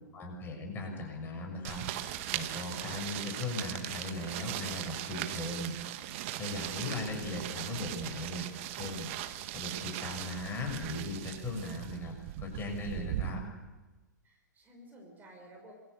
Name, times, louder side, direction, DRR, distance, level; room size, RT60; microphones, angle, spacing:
voice 1, 0.1-5.8 6.4-9.1 9.5-12.1 12.4-13.4, left 1 dB, 20° left, 2 dB, 6.5 m, -38 dB
sound 1, 1.6-13.3, right 13 dB, 40° right, 1.6 m, -39 dB
voice 2, 14.2-15.7, right 1 dB, 15° right, 0 dB, 5.3 m, -54 dB
27.0 x 22.0 x 6.9 m, 1.2 s
figure-of-eight pair, 110°, 10 cm